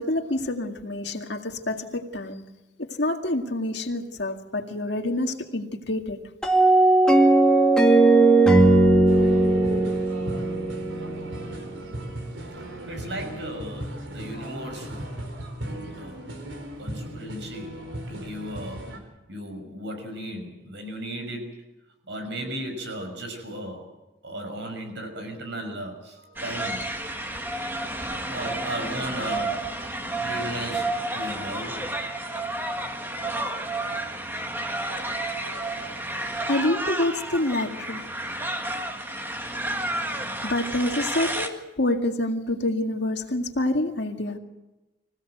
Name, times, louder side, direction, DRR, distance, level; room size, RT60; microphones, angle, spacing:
voice 1, 0.0-2.4 2.8-6.2 35.5-35.8 36.5-38.1 40.4-44.4, left 1 dB, 65° left, 4 dB, 2.1 m, -27 dB
sound 1, 6.4-11.6, right 2 dB, 5° left, 2.2 m, -18 dB
sound 2, 9.1-19.0, right 1 dB, 90° right, 4.4 m, -36 dB
voice 2, 12.6-15.1 15.9-16.2 16.8-17.8 18.1-19.0 19.3-21.6 22.0-23.9 24.2-26.8 28.3-29.6 30.1-31.8 34.5-34.7, right 1 dB, 70° right, 5 dB, 6.1 m, -36 dB
sound 3, 26.4-41.5, right 1 dB, 10° right, 1.7 m, -31 dB
25.5 x 16.5 x 8.0 m, 1.0 s
head